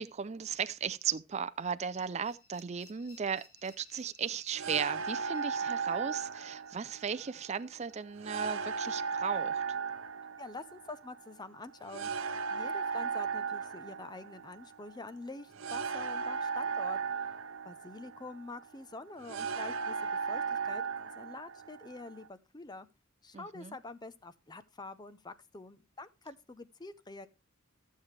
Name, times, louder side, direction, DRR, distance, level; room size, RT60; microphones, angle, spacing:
voice 1, 0.0-9.6 23.3-23.8, right 6 dB, 35° right, 0.4 m, -36 dB
sound 1, 2.0-8.8, left 3 dB, 75° left, 2.8 m, -62 dB
sound 2, 4.5-22.3, right 5 dB, 70° right, 0.7 m, -37 dB
voice 2, 10.4-17.0 17.7-22.9 23.2-27.3, left 3 dB, 20° left, 0.6 m, -46 dB
13.5 x 7.3 x 3.2 m
head